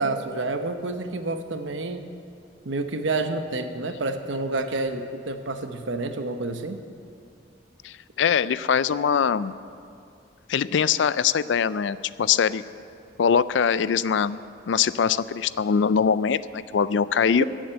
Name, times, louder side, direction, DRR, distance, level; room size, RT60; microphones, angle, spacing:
voice 1, 0.0-2.0 2.6-6.8 17.4-17.5, right 2 dB, 85° right, 7 dB, 1.0 m, -29 dB
voice 2, 7.8-9.5 10.5-12.6 13.2-14.4 14.7-17.4, left 7 dB, 80° left, 16 dB, 0.4 m, -22 dB
15.0 x 7.5 x 8.8 m, 2.4 s
head